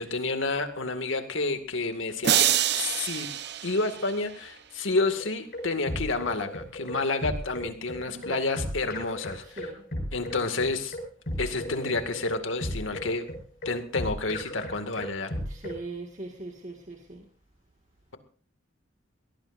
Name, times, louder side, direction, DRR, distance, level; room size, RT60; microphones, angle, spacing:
voice 1, 0.0-2.5 2.7-3.3 3.6-9.4 10.1-11.0 11.4-13.3 13.7-15.3, left 3 dB, 90° left, 7 dB, 2.1 m, -29 dB
sound 1, 2.2-4.5, right 10 dB, 60° right, 0.9 m, -26 dB
sound 2, 5.2-15.8, equal, 50° left, 5.7 m, -35 dB
voice 2, 8.1-8.5 9.4-9.8 15.5-17.3, right 2 dB, 40° right, 2 dB, 1.9 m, -41 dB
23.0 x 18.0 x 2.6 m, 0.39 s
head